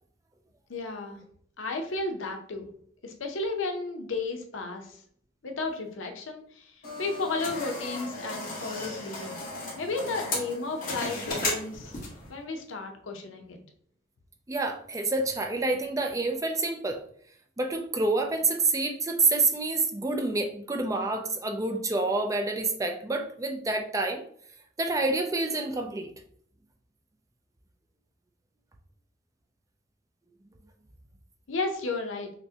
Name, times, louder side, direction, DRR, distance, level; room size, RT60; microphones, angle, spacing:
voice 1, 0.7-1.2 1.6-2.7 3.0-5.0 5.4-9.4 9.8-12.0 12.3-13.6 31.5-32.3, left 3 dB, 85° left, 4 dB, 0.7 m, -33 dB
sound 1, 6.8-12.3, left 2 dB, 45° left, 1.3 m, -35 dB
voice 2, 14.5-17.0 17.6-24.2 24.8-26.1, right 3 dB, 15° right, 4 dB, 0.4 m, -28 dB
5.9 x 2.1 x 2.8 m, 0.63 s
head